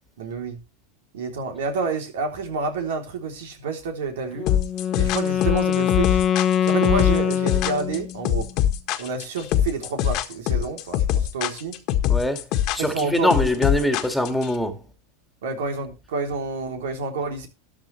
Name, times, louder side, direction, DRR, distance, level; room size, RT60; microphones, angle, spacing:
voice 1, 0.2-0.6 1.1-4.5 5.0-6.2 6.6-8.5 9.0-11.8 12.8-13.5 15.4-17.5, right 4 dB, 85° right, 3.5 m, -29 dB
Wind instrument woodwind instrument, 4.4-8.3, left 9 dB, 30° left, 0.8 m, -23 dB
sound 1, 4.5-14.5, left 11 dB, 50° left, 1.5 m, -23 dB
voice 2, 12.1-12.4 12.7-14.8, left 1 dB, ahead, 2.0 m, -23 dB
13.5 x 10.5 x 3.3 m
supercardioid pair, 130°, 0 cm